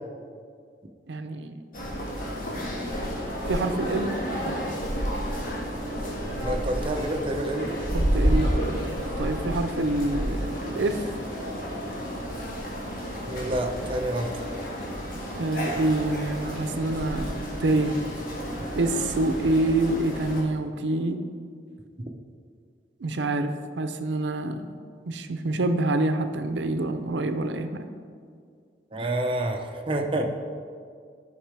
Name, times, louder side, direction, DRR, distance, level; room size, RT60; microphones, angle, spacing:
voice 1, 1.1-1.6 3.5-4.2 7.9-11.0 15.3-18.0 18.8-21.2 23.0-24.7 25.1-27.9, right 2 dB, 80° right, 8 dB, 0.6 m, -27 dB
sound 1, 1.7-20.4, equal, 50° left, 1.5 m, -30 dB
voice 2, 6.4-7.8 13.3-14.4 28.9-30.3, right 1 dB, 30° right, 3 dB, 0.7 m, -28 dB
12.5 x 5.6 x 3.4 m, 2.2 s
head